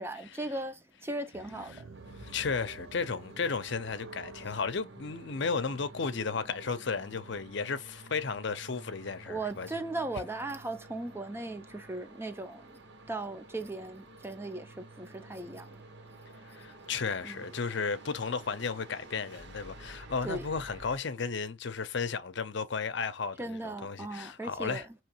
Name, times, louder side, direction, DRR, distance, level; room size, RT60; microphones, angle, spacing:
voice 1, 0.0-1.8 9.3-12.7 13.1-15.8 17.2-17.4 20.2-20.5 23.4-24.8, right 2 dB, 10° right, 0.5 m, -38 dB
sound 1, 1.3-7.6, right 3 dB, 85° right, 0.8 m, -51 dB
sound 2, 1.9-21.0, right 2 dB, 55° right, 1.1 m, -51 dB
voice 2, 2.2-9.8 16.4-24.9, left 5 dB, 60° left, 0.6 m, -34 dB
5.7 x 3.0 x 3.0 m
head